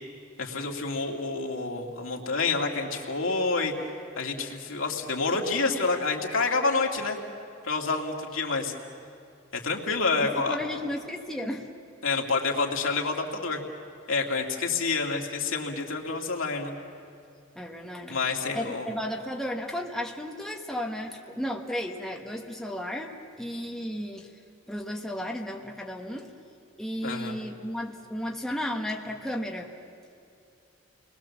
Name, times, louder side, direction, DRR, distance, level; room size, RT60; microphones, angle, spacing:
voice 1, 0.4-3.7 4.2-7.2 7.6-8.7 9.5-10.6 12.0-13.6 14.1-16.7 18.1-18.9 27.0-27.4, left 4 dB, 85° left, 1 dB, 2.5 m, -28 dB
voice 2, 10.2-11.7 17.5-18.2 18.5-23.1 23.4-24.3 24.7-26.3 26.8-29.7, left 1 dB, ahead, 0 dB, 1.4 m, -34 dB
30.0 x 21.5 x 7.3 m, 2.5 s
head